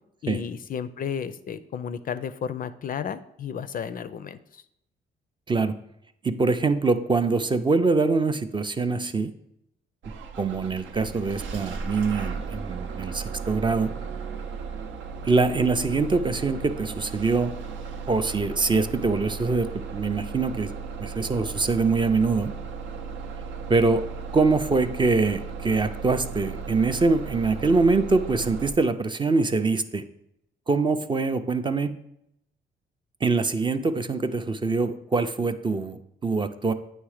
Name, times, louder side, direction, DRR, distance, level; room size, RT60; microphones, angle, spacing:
voice 1, 0.2-4.6, left 7 dB, 45° left, 12 dB, 0.4 m, -33 dB
voice 2, 6.2-9.3 10.4-13.9 15.2-17.5 18.1-20.7 21.0-22.5 23.7-24.0 24.3-30.0 30.7-32.0 33.2-36.7, right 3 dB, 25° right, 9 dB, 0.4 m, -24 dB
Bus / Engine starting, 10.0-28.7, right 5 dB, 80° right, 0.6 m, -36 dB
8.8 x 3.2 x 4.9 m, 0.79 s
cardioid pair, 90°, 20 cm